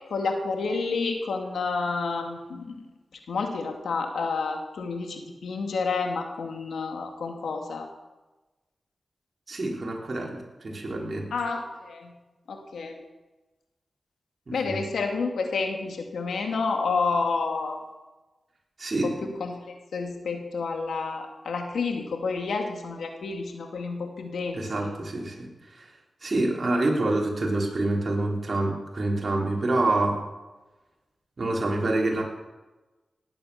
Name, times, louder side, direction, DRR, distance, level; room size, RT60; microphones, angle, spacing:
voice 1, 0.0-2.8 3.3-7.9 11.3-12.1 12.5-12.9 14.5-17.8 19.0-19.5 19.9-24.9, left 4 dB, 90° left, 3 dB, 2.3 m, -29 dB
voice 2, 9.5-11.3 14.5-14.8 18.8-19.3 24.5-25.9 26.2-30.2 31.4-32.2, right 2 dB, 50° right, -1 dB, 3.9 m, -27 dB
18.5 x 8.8 x 7.0 m, 1.1 s
cardioid pair, 45°, 0 cm